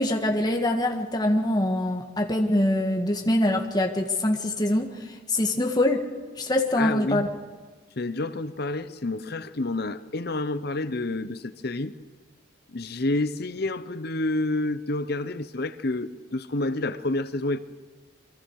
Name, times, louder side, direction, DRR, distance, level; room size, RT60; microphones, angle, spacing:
voice 1, 0.0-6.1 6.4-7.3, left 1 dB, 20° left, 1.7 m, -24 dB
voice 2, 6.8-7.3 8.0-12.0 12.7-17.6, left 2 dB, 50° left, 0.8 m, -29 dB
29.5 x 23.0 x 4.8 m
head